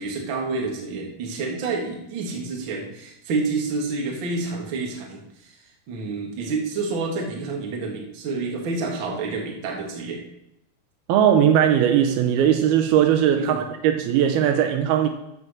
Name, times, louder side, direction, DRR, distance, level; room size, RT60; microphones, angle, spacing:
voice 1, 0.0-5.6 5.9-10.2 13.4-13.6, right 3 dB, 45° right, 1.8 m, -28 dB
voice 2, 11.1-15.1, right 9 dB, 80° right, 2.6 m, -19 dB
13.0 x 5.0 x 6.5 m
omnidirectional pair, 4.6 m